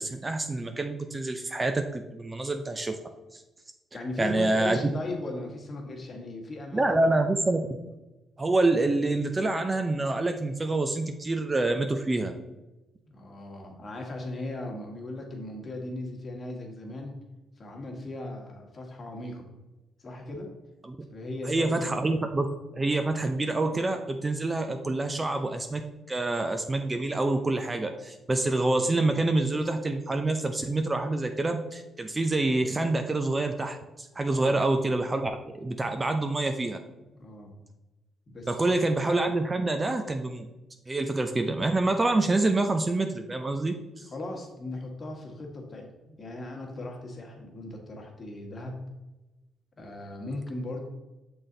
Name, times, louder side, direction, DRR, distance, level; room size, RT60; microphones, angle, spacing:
voice 1, 0.0-3.0 3.3-3.4 4.2-4.8 6.7-7.7 8.4-12.3 20.8-21.0 21.5-22.5 22.7-25.8 26.1-36.8 38.5-40.5 40.9-44.1, right 2 dB, 20° right, 6 dB, 0.5 m, -27 dB
voice 2, 3.9-7.4 13.1-17.2 17.6-19.5 20.0-20.5 21.1-22.2 34.3-34.6 37.1-37.6 38.3-38.8 44.1-48.8 49.8-50.8, left 2 dB, 35° left, 1 dB, 1.5 m, -38 dB
6.2 x 4.1 x 3.8 m, 1.1 s
cardioid pair, 90°, 0 cm